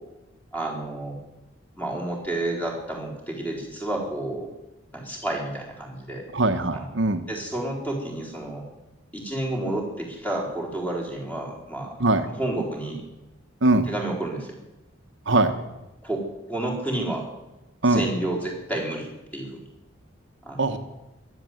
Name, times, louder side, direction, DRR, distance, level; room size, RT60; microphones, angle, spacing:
voice 1, 0.5-1.2 1.8-4.5 4.9-6.2 6.7-6.9 7.3-8.6 9.1-11.9 12.2-13.0 13.8-14.5 16.0-17.3 17.8-19.6 20.4-20.8, right 1 dB, 5° left, -1 dB, 4.0 m, -30 dB
voice 2, 6.3-7.2 12.0-12.2 13.6-13.9 15.3-15.5 17.8-18.0 20.6-20.8, right 2 dB, 65° right, 6 dB, 1.2 m, -21 dB
15.0 x 11.0 x 7.9 m, 1.0 s
head